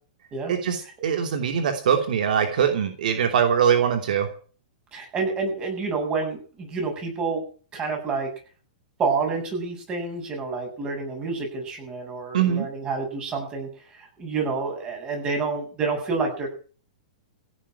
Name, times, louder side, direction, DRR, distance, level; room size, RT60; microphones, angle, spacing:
voice 1, 0.5-4.3 12.3-12.7, right 8 dB, 70° right, 5 dB, 2.9 m, -22 dB
voice 2, 4.9-7.4 7.7-8.3 9.0-13.7 14.2-16.5, right 4 dB, 20° right, 2 dB, 7.7 m, -28 dB
16.5 x 7.8 x 9.9 m, 0.42 s
hypercardioid pair, 155°, 5 cm